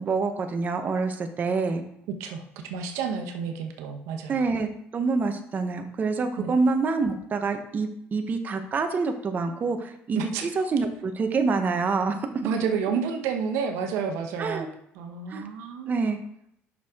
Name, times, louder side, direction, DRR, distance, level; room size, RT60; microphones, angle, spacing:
voice 1, 0.0-1.8 4.3-4.7 4.9-12.3 14.4-14.7 15.3-15.4 15.9-16.2, right 4 dB, 35° right, 6 dB, 0.9 m, -26 dB
voice 2, 2.2-4.4 6.4-6.5 10.1-10.6 12.4-16.1, right 6 dB, 85° right, 4 dB, 1.0 m, -30 dB
7.3 x 6.2 x 3.6 m, 0.71 s
cardioid pair, 105°, 5 cm